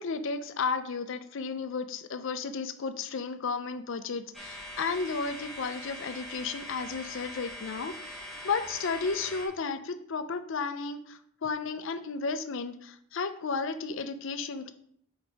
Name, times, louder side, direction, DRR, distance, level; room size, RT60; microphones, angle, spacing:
voice 1, 0.0-8.1 8.4-14.7, left 4 dB, 55° left, 10 dB, 0.5 m, -33 dB
sound 1, 4.3-9.5, equal, ahead, 1.0 m, -42 dB
5.1 x 4.1 x 4.5 m, 0.67 s
head